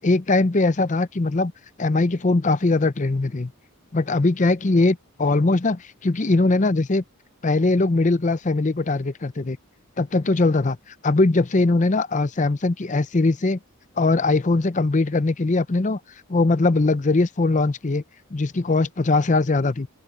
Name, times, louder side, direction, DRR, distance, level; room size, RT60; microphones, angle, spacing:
voice 1, 0.0-1.5 1.8-3.5 3.9-7.0 7.4-9.6 10.0-10.8 11.0-13.6 14.0-16.0 16.3-18.0 18.3-19.9, left 2 dB, 35° left, 0.6 m, -21 dB
open air
head